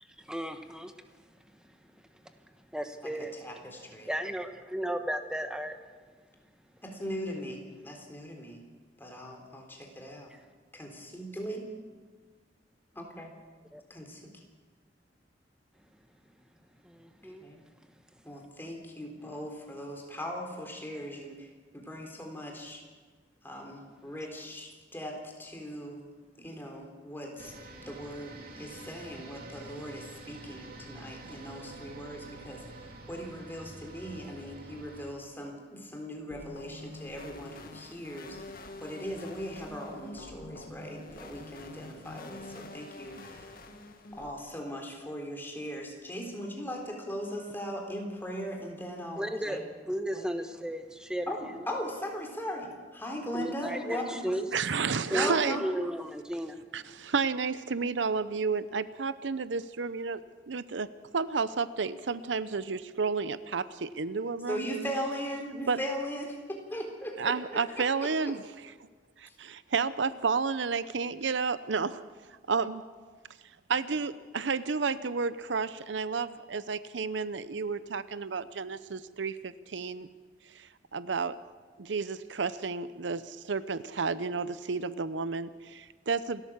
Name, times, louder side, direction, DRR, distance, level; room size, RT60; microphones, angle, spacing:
voice 1, 0.2-0.9 2.7-3.3 4.1-5.8 13.7-13.8 16.8-17.4 49.2-49.6 49.9-51.3 53.3-54.0 54.2-54.5 55.1-56.6, equal, 5° right, 7 dB, 1.3 m, -34 dB
voice 2, 3.0-4.1 6.8-8.7 9.0-10.3 10.7-11.6 12.9-13.3 13.9-14.4 17.1-17.6 18.2-22.8 23.4-27.5 27.8-43.6 44.1-49.6 50.1-50.3 51.3-54.3 55.1-55.6 64.5-68.3 69.3-69.4, equal, 10° left, 1 dB, 3.6 m, -39 dB
sound 1, 27.4-35.1, right 2 dB, 55° right, 2.9 m, -47 dB
sound 2, 36.3-44.3, left 2 dB, 55° left, 1.8 m, -46 dB
voice 3, 54.5-55.6 56.7-60.2 60.5-60.9 61.1-63.6 64.0-64.6 65.7-65.8 67.2-68.4 69.2-72.0 72.5-72.8 73.7-80.1 80.5-81.4 81.8-86.4, right 5 dB, 85° right, 15 dB, 0.7 m, -31 dB
28.0 x 13.0 x 7.4 m, 1.5 s
head